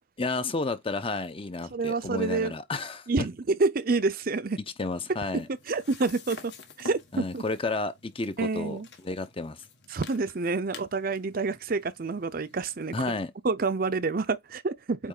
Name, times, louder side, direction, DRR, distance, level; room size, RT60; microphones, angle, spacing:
voice 1, 0.2-3.1 4.8-5.5 7.1-8.8 9.0-9.6 12.9-13.3, left 3 dB, 30° left, 0.8 m, -31 dB
voice 2, 1.7-2.5 3.1-4.6 5.3-6.5 6.8-7.4 8.4-8.9 9.9-13.2 13.4-15.1, right 3 dB, 50° right, 0.6 m, -28 dB
sound 1, 4.9-13.2, left 4 dB, 65° left, 1.6 m, -49 dB
8.5 x 3.2 x 3.8 m
head